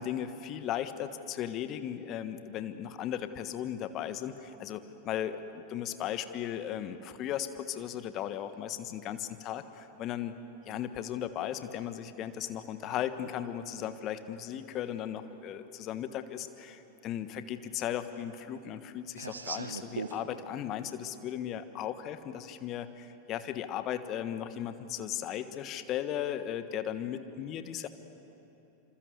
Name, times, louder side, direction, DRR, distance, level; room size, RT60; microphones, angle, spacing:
voice 1, 0.0-10.4 10.6-27.9, left 10 dB, 35° left, 11 dB, 1.4 m, -36 dB
sound 1, 13.6-13.7 15.0-15.1 15.6-15.7 15.9-16.6 16.9-20.2, right 4 dB, 75° right, 1.5 m, -41 dB
26.5 x 26.0 x 8.1 m, 3.0 s
figure-of-eight pair, 90°, 0 cm